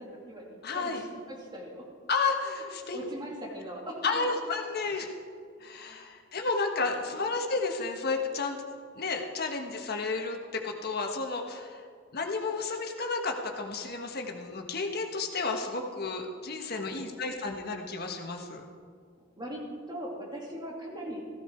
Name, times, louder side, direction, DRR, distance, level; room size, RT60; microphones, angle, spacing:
voice 1, 0.0-1.9 2.6-4.3 5.6-6.1 6.9-7.0 16.6-17.1 19.4-21.3, equal, 20° right, -1 dB, 2.3 m, -41 dB
voice 2, 0.6-1.0 2.1-3.0 4.0-5.1 5.6-8.6 8.9-11.9 12.1-18.6, left 4 dB, 55° left, 3 dB, 1.4 m, -32 dB
15.0 x 13.5 x 4.5 m, 2.1 s
head